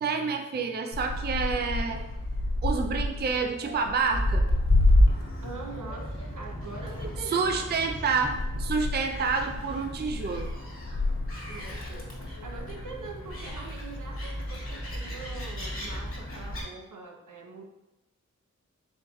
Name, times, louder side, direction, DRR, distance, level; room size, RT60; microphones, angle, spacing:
voice 1, 0.0-2.0 2.6-4.4 7.3-10.5, right 5 dB, 35° right, 4 dB, 0.4 m, -28 dB
Gull seagull, 0.9-16.6, left 1 dB, 45° left, 1.4 m, -29 dB
voice 2, 5.4-8.0 11.5-17.6, right 3 dB, 75° right, 2 dB, 0.8 m, -43 dB
4.4 x 3.4 x 3.0 m, 1.0 s
wide cardioid pair, 60°, 31 cm